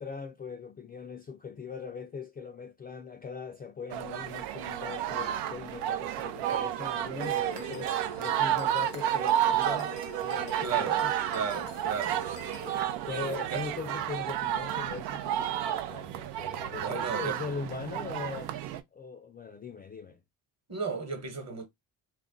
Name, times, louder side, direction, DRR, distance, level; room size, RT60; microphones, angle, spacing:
voice 1, 0.0-9.9 10.2-11.1 12.6-18.6 18.9-20.2, left 5 dB, 25° left, 0.3 m, -40 dB
sound 1, 3.9-18.8, right 11 dB, 85° right, 0.5 m, -31 dB
sound 2, 7.2-12.7, left 10 dB, 80° left, 0.6 m, -47 dB
voice 2, 10.6-11.0 11.3-12.5 12.8-13.6 16.8-17.4 20.7-21.7, right 6 dB, 40° right, 1.1 m, -35 dB
2.4 x 2.1 x 3.7 m
supercardioid pair, 70°, 41 cm